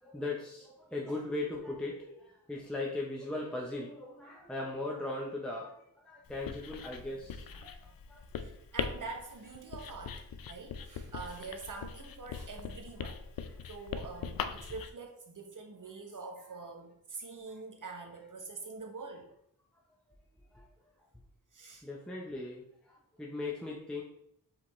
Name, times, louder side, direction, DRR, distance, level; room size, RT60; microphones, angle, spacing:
voice 1, 0.0-8.5 14.4-14.5 20.5-20.6 21.8-24.0, left 2 dB, 5° left, -3 dB, 0.7 m, -39 dB
Writing, 6.3-14.9, left 7 dB, 65° left, 0.5 m, -41 dB
voice 2, 8.4-13.2 13.7-19.3 21.5-21.8, right 4 dB, 55° right, 2 dB, 1.0 m, -45 dB
4.9 x 3.4 x 3.1 m, 0.75 s
wide cardioid pair, 65°, 38 cm